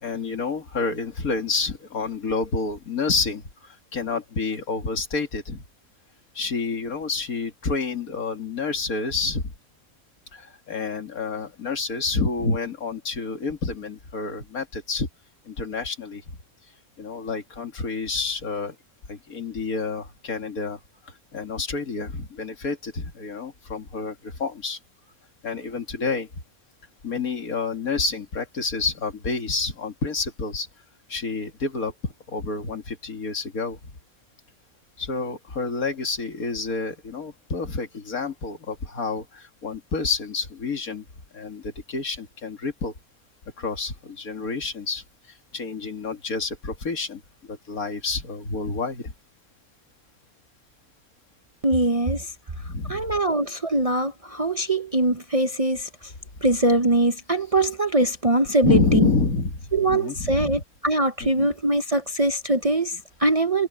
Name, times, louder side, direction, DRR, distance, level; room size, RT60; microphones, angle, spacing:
voice 1, 0.0-3.4 3.9-5.6 6.4-9.5 10.3-15.1 15.5-16.2 17.0-18.8 19.1-20.8 21.3-24.8 25.4-26.3 27.0-30.7 31.1-31.9 32.3-33.8 35.0-41.0 41.3-42.9 43.6-45.0 45.5-47.2 47.5-49.1 52.6-53.1 58.6-59.6 59.9-60.6 61.2-61.5, left 4 dB, 80° left, 2.7 m, -28 dB
voice 2, 51.6-52.3 52.6-56.1 56.4-59.1 59.7-63.7, right 2 dB, 35° right, 0.7 m, -22 dB
omnidirectional pair, 1.5 m